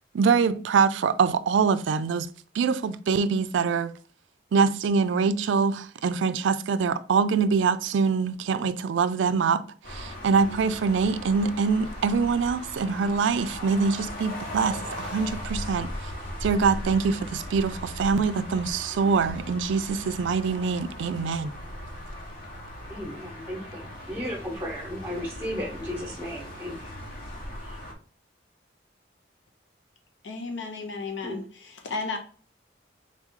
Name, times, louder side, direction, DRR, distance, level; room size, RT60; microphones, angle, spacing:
voice 1, 0.1-2.3 2.5-3.9 4.5-9.6 9.9-16.1 16.4-21.5, right 5 dB, 85° right, 0.4 m, -24 dB
sound 1, 9.8-27.9, left 1 dB, 50° left, 1.0 m, -38 dB
voice 2, 22.9-26.9 27.6-27.8 31.2-31.4, equal, 15° right, 0.9 m, -35 dB
voice 3, 30.2-31.4 31.8-32.2, left 4 dB, 80° left, 0.8 m, -33 dB
4.0 x 3.1 x 3.6 m
head